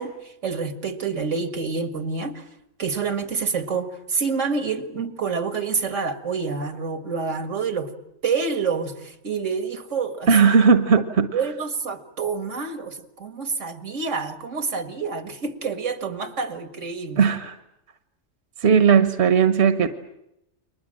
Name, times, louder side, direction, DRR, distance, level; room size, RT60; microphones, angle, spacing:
voice 1, 0.0-2.5 2.8-7.9 8.2-10.5 11.3-17.2, right 5 dB, 85° right, 8 dB, 2.2 m, -28 dB
voice 2, 10.3-11.3 17.2-17.5 18.6-19.9, right 6 dB, 65° right, 9 dB, 1.5 m, -17 dB
30.0 x 23.0 x 7.6 m, 0.84 s
omnidirectional pair, 1.2 m